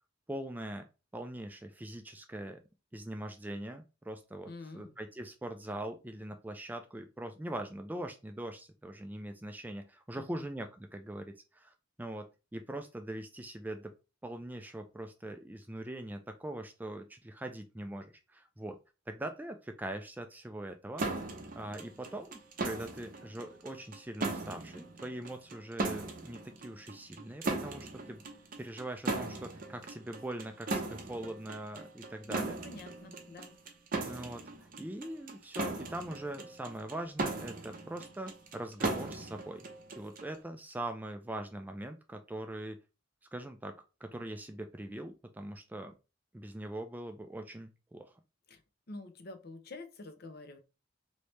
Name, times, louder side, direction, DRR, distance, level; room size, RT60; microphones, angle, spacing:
voice 1, 0.3-2.6 2.9-12.3 12.5-13.9 14.2-18.8 19.1-21.0 21.5-28.2 28.6-32.6 34.0-39.7 40.0-42.8 43.3-43.8 44.0-45.9 46.3-48.1, right 1 dB, 10° right, 6 dB, 0.3 m, -42 dB
voice 2, 4.4-4.9 10.1-10.5 32.2-33.6 48.5-48.6 48.9-50.6, left 2 dB, 55° left, 8 dB, 0.6 m, -47 dB
sound 1, 21.0-40.4, right 3 dB, 45° right, 0.6 m, -38 dB
3.2 x 2.7 x 3.1 m, 0.29 s
head